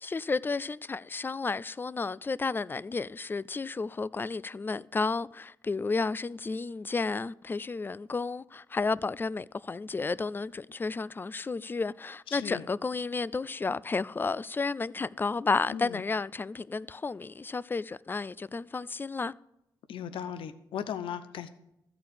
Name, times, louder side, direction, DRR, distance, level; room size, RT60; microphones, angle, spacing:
voice 1, 0.0-19.3, left 4 dB, 25° left, 0.3 m, -32 dB
voice 2, 12.3-12.6 15.7-16.0 19.9-21.5, left 8 dB, 80° left, 0.7 m, -37 dB
13.5 x 4.7 x 8.5 m
cardioid pair, 65°, 9 cm